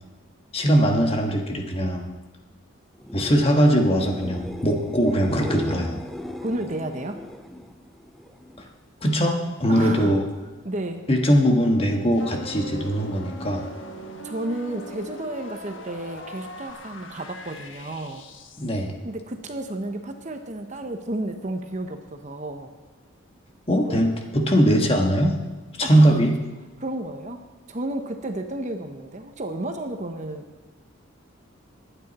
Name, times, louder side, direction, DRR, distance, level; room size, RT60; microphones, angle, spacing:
voice 1, 0.5-2.1 3.1-6.0 9.0-10.2 11.1-13.7 18.6-18.9 23.7-25.4 25.8-26.4, equal, 30° left, 2 dB, 1.5 m, -21 dB
sound 1, 2.9-8.7 9.1-9.6 16.7-16.8, left 1 dB, ahead, 0.6 m, -37 dB
voice 2, 6.4-7.2 9.7-10.1 10.6-11.1 14.2-18.2 19.0-22.7 23.9-24.0 24.8-24.9 25.8-26.3 26.8-30.7, right 1 dB, 35° right, 6 dB, 0.9 m, -32 dB
sound 2, 12.1-18.8, left 1 dB, 70° left, 1.3 m, -40 dB
20.0 x 9.1 x 4.2 m, 1.3 s
head